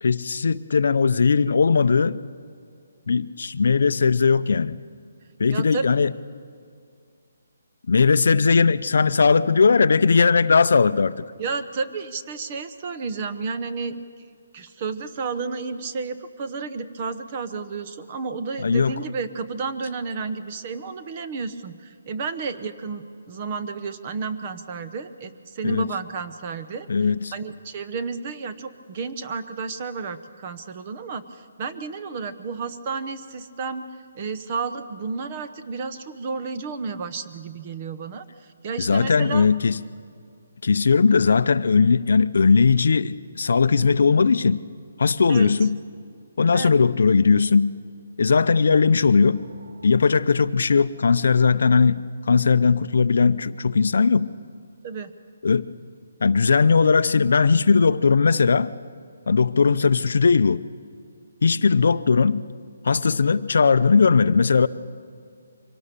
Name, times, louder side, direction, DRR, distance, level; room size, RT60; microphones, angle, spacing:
voice 1, 0.0-2.2 3.1-4.8 5.4-6.1 7.9-11.2 18.6-18.9 25.6-25.9 26.9-27.3 38.8-39.8 40.6-44.6 45.0-45.8 46.4-47.7 48.2-49.5 49.8-54.3 55.4-55.7 56.2-58.7 59.3-60.6 61.4-62.5 62.8-64.7, left 5 dB, 60° left, 14 dB, 0.6 m, -19 dB
voice 2, 5.5-5.9 11.4-14.0 14.5-33.8 34.1-39.5 45.3-45.5 46.5-46.7 54.8-55.1, right 4 dB, 25° right, 9 dB, 0.8 m, -32 dB
sound 1, 48.3-51.5, right 2 dB, 80° right, 3.1 m, -49 dB
24.0 x 18.0 x 6.8 m, 2.3 s
hypercardioid pair, 175°, 0 cm